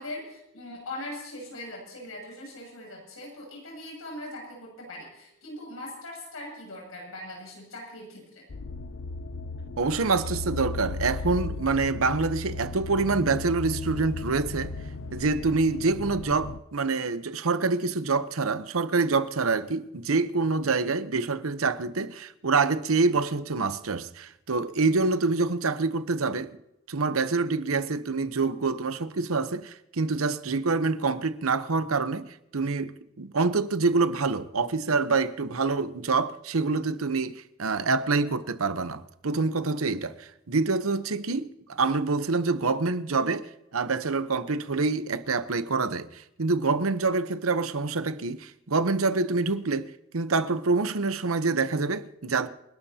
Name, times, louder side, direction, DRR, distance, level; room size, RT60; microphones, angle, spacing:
voice 1, 0.0-8.4, left 1 dB, 85° left, 7.3 m, -40 dB
sound 1, 8.5-16.6, left 3 dB, 65° left, 0.6 m, -36 dB
voice 2, 9.8-14.7 15.1-26.6 26.9-52.5, right 3 dB, 90° right, 0.9 m, -26 dB
28.5 x 12.5 x 2.9 m
head